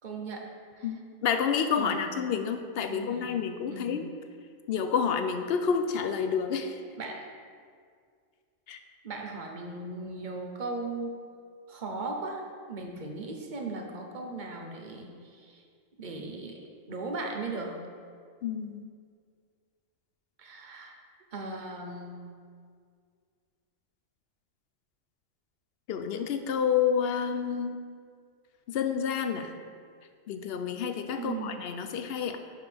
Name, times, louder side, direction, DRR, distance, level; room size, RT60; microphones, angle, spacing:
voice 1, 0.0-0.9 1.8-2.2 2.9-3.3 3.7-4.0 7.0-7.2 9.0-11.2 11.7-15.6 16.0-16.6 16.9-17.8 20.4-21.0 21.3-22.2 31.2-31.6, right 3 dB, 40° right, 2 dB, 0.9 m, -38 dB
voice 2, 0.8-4.1 4.7-6.8 8.7-8.8 18.4-18.8 25.9-27.7 28.7-29.5 30.3-32.4, left 7 dB, 65° left, 7 dB, 0.6 m, -29 dB
10.5 x 4.9 x 3.5 m, 2.1 s
omnidirectional pair, 1.4 m